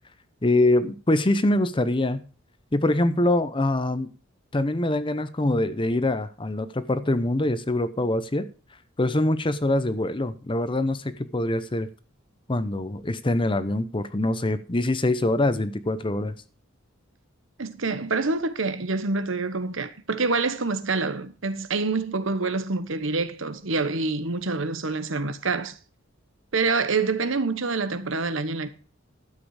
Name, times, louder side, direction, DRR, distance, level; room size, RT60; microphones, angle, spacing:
voice 1, 0.4-2.2 2.7-4.1 4.5-8.5 9.0-11.9 12.5-16.3, left 1 dB, 25° left, 0.8 m, -24 dB
voice 2, 17.6-25.7 26.5-28.7, right 3 dB, 70° right, 1.2 m, -26 dB
12.5 x 7.7 x 4.8 m
head